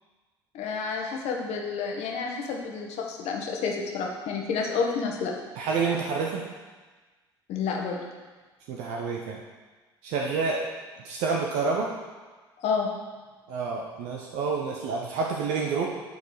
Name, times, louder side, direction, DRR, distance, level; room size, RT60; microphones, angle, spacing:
voice 1, 0.5-5.3 7.5-8.0 12.6-12.9, left 5 dB, 55° left, 1 dB, 1.5 m, -29 dB
voice 2, 5.6-6.5 8.7-9.4 10.0-10.7 11.0-11.9 13.5-15.9, right 4 dB, 60° right, -1 dB, 0.9 m, -28 dB
11.5 x 4.6 x 4.8 m, 1.3 s
figure-of-eight pair, 55°, 13 cm